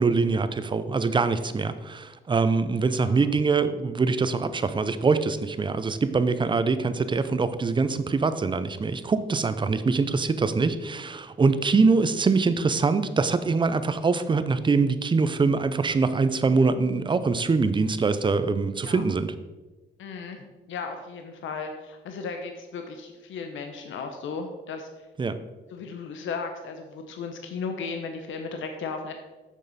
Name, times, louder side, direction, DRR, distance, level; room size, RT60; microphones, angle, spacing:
voice 1, 0.0-19.3 25.2-25.4, right 4 dB, 25° right, 12 dB, 0.5 m, -24 dB
voice 2, 20.0-25.1 25.7-29.1, left 5 dB, 80° left, 5 dB, 0.7 m, -35 dB
6.6 x 6.5 x 4.0 m, 1.2 s
cardioid pair, 90°, 20 cm